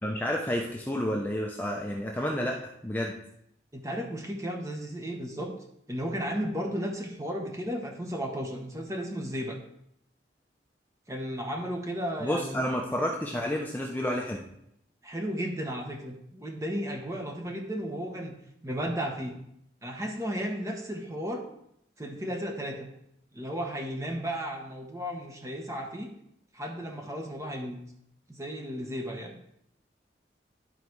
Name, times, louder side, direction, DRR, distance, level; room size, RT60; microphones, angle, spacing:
voice 1, 0.0-2.6 2.8-3.2 12.2-14.4, equal, 10° left, -1 dB, 0.6 m, -30 dB
voice 2, 3.7-5.5 5.9-9.6 11.1-13.1 15.0-18.3 18.6-19.4 19.8-21.4 22.0-22.9 23.3-26.1 26.5-27.8 28.3-29.3, equal, 15° right, 2 dB, 1.1 m, -34 dB
11.5 x 4.1 x 4.6 m, 0.75 s
head